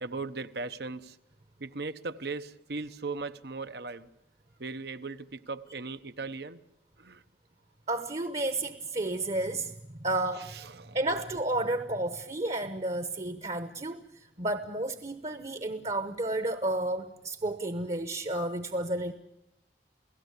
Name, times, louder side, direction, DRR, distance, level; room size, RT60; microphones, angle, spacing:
voice 1, 0.0-1.2 1.6-4.1 4.6-6.6 7.0-7.2 10.5-11.0, right 3 dB, 65° right, 1.0 m, -38 dB
voice 2, 7.9-10.6 10.9-19.1, right 2 dB, 35° right, 1.0 m, -32 dB
29.0 x 17.0 x 8.3 m
head